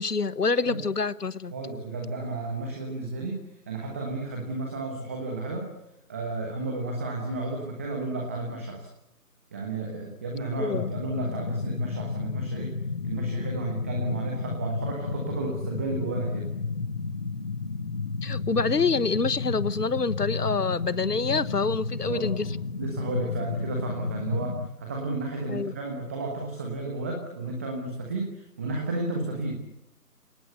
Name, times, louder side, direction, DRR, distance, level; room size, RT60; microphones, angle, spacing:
voice 1, 0.0-1.5 10.6-10.9 18.2-22.5 25.5-25.7, left 4 dB, 75° left, 17 dB, 1.3 m, -26 dB
voice 2, 1.5-5.7 6.1-8.9 9.5-12.7 13.0-16.5 21.9-29.5, right 2 dB, 10° right, 1 dB, 1.2 m, -32 dB
sound 1, 10.7-24.7, left 4 dB, 30° left, 1.0 m, -32 dB
30.0 x 18.5 x 8.1 m, 0.88 s
figure-of-eight pair, 155°, 47 cm